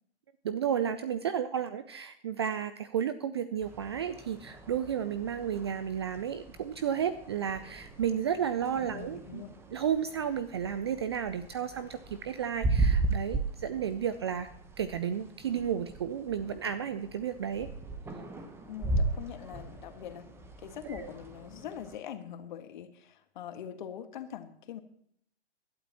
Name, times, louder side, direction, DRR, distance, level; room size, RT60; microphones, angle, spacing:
voice 1, 0.4-9.4 9.7-14.5 14.8-17.7 21.0-21.1, right 8 dB, 25° right, 13 dB, 0.4 m, -32 dB
sound 1, 3.6-22.0, right 3 dB, 5° right, 1.0 m, -37 dB
voice 2, 8.9-9.5 18.7-24.8, left 9 dB, 45° left, 8 dB, 1.7 m, -43 dB
19.0 x 12.0 x 2.9 m, 0.67 s
figure-of-eight pair, 130°, 35 cm